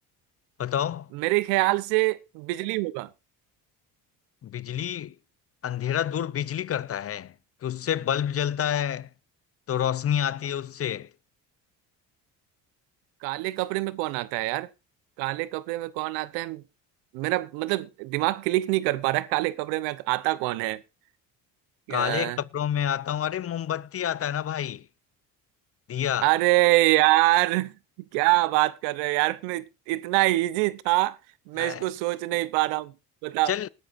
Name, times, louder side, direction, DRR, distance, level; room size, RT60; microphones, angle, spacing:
voice 1, 0.6-1.1 4.4-5.1 5.6-7.3 7.6-9.1 9.7-11.1 21.9-24.9 25.9-26.3 31.6-31.9 33.5-33.7, left 10 dB, 35° left, 0.7 m, -28 dB
voice 2, 1.1-3.1 13.2-14.7 15.2-16.6 17.1-20.8 21.9-22.4 26.2-27.7 28.1-31.2 31.5-32.9 33.2-33.5, right 19 dB, 90° right, 0.9 m, -25 dB
19.5 x 11.0 x 2.6 m
supercardioid pair, 85°, 39 cm